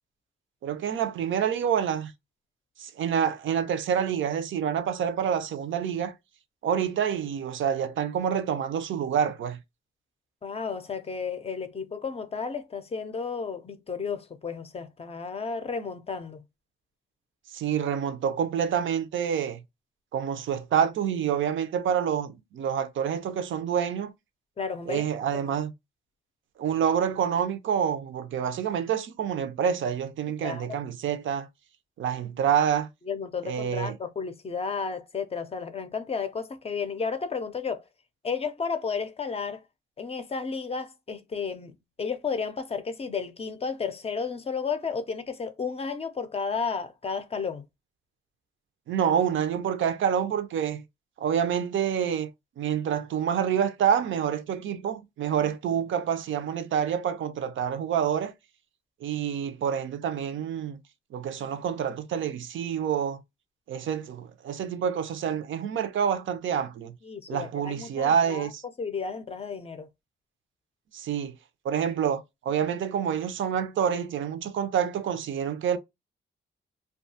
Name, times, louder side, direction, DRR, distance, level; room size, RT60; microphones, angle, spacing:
voice 1, 0.6-2.1 2.8-6.1 6.6-9.6 17.5-19.6 20.1-24.1 24.9-25.7 26.6-31.5 32.0-32.9 33.4-34.0 48.9-50.8 51.2-52.3 52.6-58.3 59.0-60.8 61.1-63.2 63.7-66.9 67.3-68.6 70.9-71.4 71.6-75.8, right 8 dB, 75° right, 0.5 m, -27 dB
voice 2, 10.4-16.4 24.6-25.0 25.3-25.6 30.4-30.8 33.0-37.8 38.2-39.6 40.0-41.7 42.0-47.6 67.0-68.5 68.8-69.9, left 5 dB, 30° left, 0.4 m, -33 dB
2.6 x 2.3 x 2.6 m
cardioid pair, 110°, 20 cm